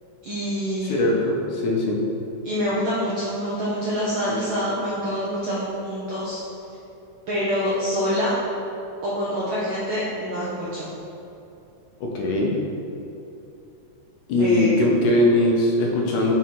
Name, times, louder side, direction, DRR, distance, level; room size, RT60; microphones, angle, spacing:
voice 1, 0.2-1.1 2.4-6.4 7.3-8.4 9.0-10.9 14.4-14.7, equal, 75° right, -7 dB, 1.1 m, -26 dB
voice 2, 0.9-2.1 12.0-12.5 14.3-16.3, left 1 dB, 85° left, -1 dB, 2.3 m, -20 dB
6.2 x 4.1 x 4.2 m, 2.8 s
omnidirectional pair, 3.4 m